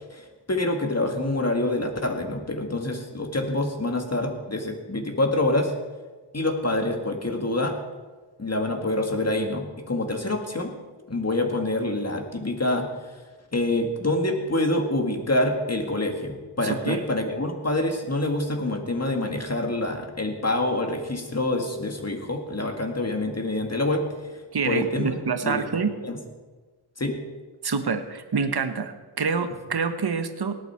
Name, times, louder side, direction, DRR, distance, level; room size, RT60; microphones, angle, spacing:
voice 1, 0.1-5.7 6.3-7.8 8.4-10.7 11.1-13.2 13.5-25.1 25.4-26.2 27.0-27.2, left 1 dB, 30° left, 4 dB, 2.0 m, -26 dB
voice 2, 16.6-17.0 24.5-25.9 27.6-30.5, right 5 dB, 50° right, 9 dB, 1.2 m, -27 dB
18.0 x 9.2 x 4.5 m, 1.3 s
wide cardioid pair, 60°, 48 cm